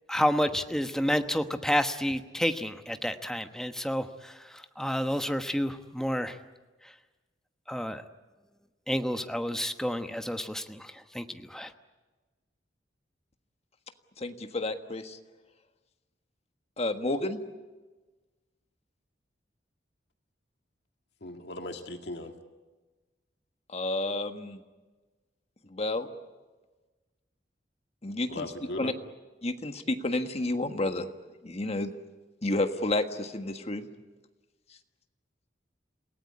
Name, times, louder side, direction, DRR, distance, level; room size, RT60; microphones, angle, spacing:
voice 1, 0.1-6.4 7.7-8.0 8.9-11.7, equal, 5° left, 8 dB, 1.1 m, -30 dB
voice 2, 14.2-15.2 16.8-17.4 23.7-24.6 25.7-26.1 28.0-28.5 28.8-28.9 29.4-31.1 31.4-31.9 32.4-33.9, left 2 dB, 35° left, 7 dB, 1.5 m, -30 dB
voice 3, 21.2-22.3 28.3-28.9, left 2 dB, 65° left, 5 dB, 1.9 m, -38 dB
28.0 x 18.0 x 9.7 m, 1.3 s
head